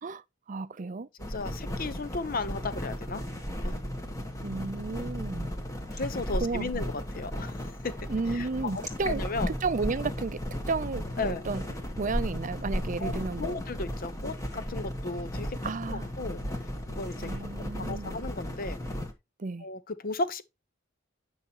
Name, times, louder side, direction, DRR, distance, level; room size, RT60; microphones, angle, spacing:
voice 1, 0.0-1.1 4.4-5.5 6.4-6.8 8.1-9.2 9.6-10.4 10.7-11.6 12.0-13.6 15.6-16.1 17.2-18.2 19.4-19.7, right 4 dB, 40° right, 0.5 m, -33 dB
sound 1, 1.2-19.1, equal, 15° left, 1.7 m, -35 dB
voice 2, 1.3-3.2 3.6-3.8 5.9-8.0 8.3-9.5 11.2-11.5 13.0-15.6 15.9-16.4 16.9-17.3 17.8-18.8 19.6-20.4, left 3 dB, 45° left, 0.8 m, -35 dB
9.2 x 5.7 x 2.9 m
head